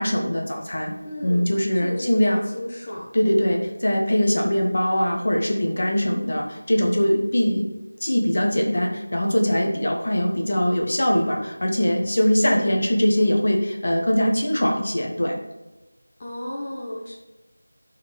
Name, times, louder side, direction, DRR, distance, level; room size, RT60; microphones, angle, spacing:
voice 1, 0.0-0.9 1.2-2.4 3.1-7.7 8.0-15.4, equal, 50° left, 1 dB, 1.4 m, -22 dB
voice 2, 1.0-1.5 1.8-3.1 12.4-12.8 16.2-17.2, left 1 dB, 25° left, -6 dB, 1.0 m, -32 dB
5.8 x 4.4 x 6.0 m, 1.1 s
figure-of-eight pair, 175°, 0 cm